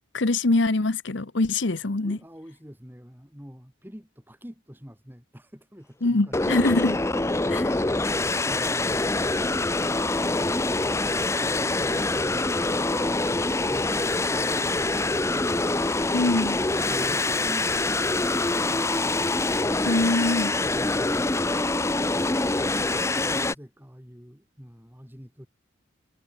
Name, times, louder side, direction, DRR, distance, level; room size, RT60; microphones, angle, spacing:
voice 1, 0.1-2.2 6.0-7.0 7.5-7.6 16.1-16.6 19.8-20.6, left 2 dB, 65° left, 1.0 m, -23 dB
voice 2, 2.0-6.5 7.1-7.2 8.5-9.0 16.6-19.3 20.6-21.3 23.0-25.5, equal, 10° right, 3.9 m, -46 dB
sound 1, 6.3-23.5, left 2 dB, 15° left, 0.6 m, -25 dB
head